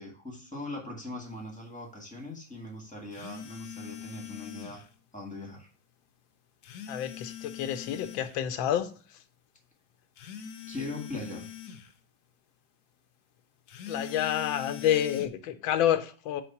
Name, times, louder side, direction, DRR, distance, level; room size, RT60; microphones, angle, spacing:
voice 1, 0.0-4.9 5.1-5.7 10.7-11.5, left 2 dB, 5° left, -1 dB, 1.7 m, -40 dB
sound 1, 3.1-4.9 6.6-8.4 10.2-11.9 13.7-15.3, left 9 dB, 65° left, 1.1 m, -42 dB
voice 2, 6.9-8.9 13.9-16.4, left 10 dB, 85° left, 10 dB, 1.5 m, -28 dB
5.1 x 4.3 x 5.8 m, 0.39 s
omnidirectional pair, 2.1 m